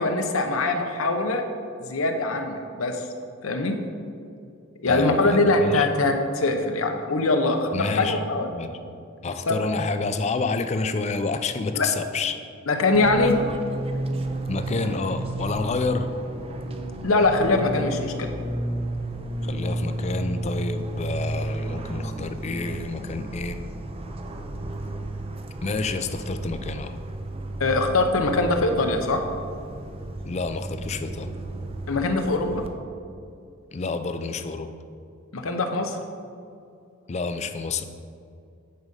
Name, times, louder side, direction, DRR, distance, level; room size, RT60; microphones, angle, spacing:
voice 1, 0.0-1.4 1.8-3.0 3.4-3.8 4.8-8.5 9.5-9.6 11.7-11.9 12.7-13.4 17.0-18.3 27.6-29.2 31.9-32.7 35.3-36.0, left 2 dB, 85° left, 5 dB, 0.9 m, -22 dB
voice 2, 4.9-5.9 7.7-8.2 8.5-8.8 9.2-12.3 14.5-16.1 19.4-23.6 25.6-27.0 30.2-31.3 33.7-34.7 37.1-37.9, left 4 dB, 30° left, 9 dB, 0.4 m, -29 dB
Fixed-wing aircraft airplane, 12.9-32.7, right 1 dB, 30° right, 0.5 m, -32 dB
9.1 x 5.2 x 5.3 m, 2.5 s
head